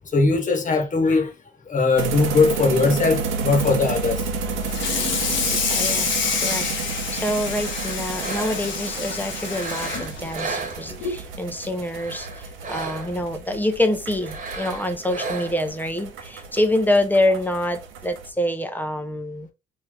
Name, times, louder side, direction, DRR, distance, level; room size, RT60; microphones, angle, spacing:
voice 1, 0.1-1.3 1.7-4.2, left 4 dB, 40° left, 1.2 m, -20 dB
sound 1, 2.0-18.3, right 5 dB, 85° right, 0.9 m, -32 dB
Water tap faucet / Sink (filling or washing), 4.6-11.3 11.6-11.9 12.2-12.3 12.8-12.9 14.0-14.1 14.5-14.8, left 5 dB, 70° left, 1.0 m, -27 dB
voice 2, 5.5-6.1 6.4-19.5, left 1 dB, 10° left, 0.6 m, -26 dB
sound 2, 7.3-8.8 9.4-11.3 11.8-13.3 14.2-15.8, right 4 dB, 40° right, 1.3 m, -34 dB
3.2 x 2.7 x 3.7 m
cardioid pair, 90°, 20 cm